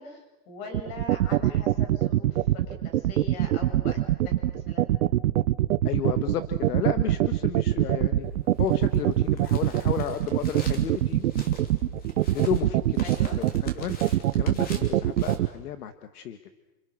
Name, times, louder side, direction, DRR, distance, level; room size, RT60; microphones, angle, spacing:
voice 1, 0.0-4.0 4.2-4.8 13.0-13.4, left 3 dB, 35° left, 4 dB, 7.6 m, -42 dB
sound 1, 0.7-15.5, right 13 dB, 55° right, 0.9 m, -23 dB
voice 2, 5.8-8.3 8.6-11.3 12.3-13.0 13.4-16.4, left 10 dB, 65° left, 9 dB, 1.7 m, -33 dB
sound 2, 8.2-15.4, left 2 dB, 20° left, 3.1 m, -44 dB
29.0 x 28.5 x 6.4 m, 1.1 s
hypercardioid pair, 165°, 49 cm